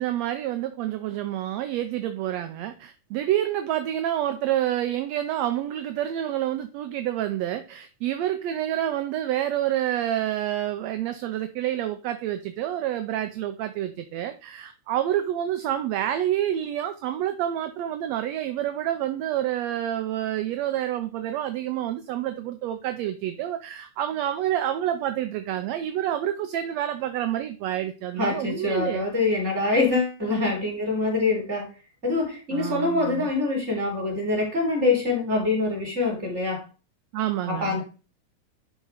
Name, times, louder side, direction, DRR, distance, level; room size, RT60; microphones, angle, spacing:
voice 1, 0.0-29.1 32.5-33.3 37.1-37.8, right 12 dB, 75° right, 8 dB, 1.8 m, -28 dB
voice 2, 28.2-31.7 32.0-36.6 37.5-37.8, left 3 dB, 20° right, -2 dB, 4.3 m, -25 dB
11.5 x 4.2 x 4.9 m, 0.33 s
omnidirectional pair, 3.4 m